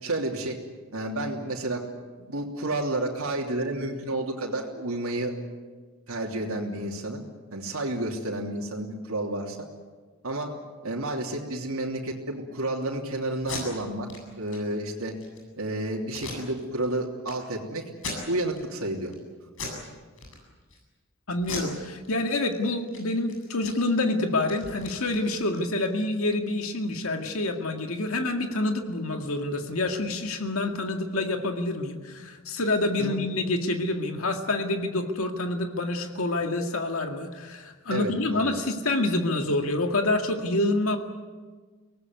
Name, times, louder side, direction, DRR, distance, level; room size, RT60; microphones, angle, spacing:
voice 1, 0.0-0.6 0.9-1.8 2.2-5.3 6.1-7.2 7.5-9.6 10.2-10.5 10.8-14.1 14.4-15.1 15.6-17.8 18.3-19.1 33.0-33.2 37.9-38.6, right 1 dB, 85° right, -1 dB, 3.2 m, -30 dB
Packing tape duct tape, 13.3-13.6 14.1-14.2 14.5-14.6 15.0-15.4 16.1-16.9 17.2-17.3 17.9-18.6 19.0-19.2 19.5-19.8 20.1-20.8 21.4-22.5 22.8-23.0 23.3-25.9, left 4 dB, 65° left, 7.9 m, -38 dB
voice 2, 21.3-41.0, left 2 dB, 90° left, 4 dB, 2.1 m, -27 dB
24.5 x 19.0 x 9.6 m, 1.4 s
head